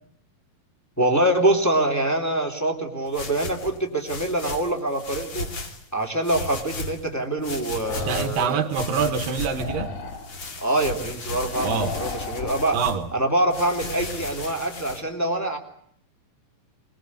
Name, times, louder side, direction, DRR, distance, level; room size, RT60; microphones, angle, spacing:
voice 1, 1.0-5.5 5.9-8.6 9.0-9.1 10.6-12.8 13.1-15.6, right 1 dB, 5° left, 2.4 m, -24 dB
sound 1, 3.1-5.8 6.2-7.1 7.4-9.7 10.1-13.0 13.5-15.0, left 2 dB, 40° left, 2.6 m, -35 dB
sound 2, 7.8-8.4 9.5-10.3 11.5-12.8, left 4 dB, 85° left, 4.5 m, -34 dB
voice 2, 8.1-9.9 11.6-12.0 12.7-13.1, right 6 dB, 80° right, 3.3 m, -25 dB
22.5 x 21.0 x 9.5 m
omnidirectional pair, 3.9 m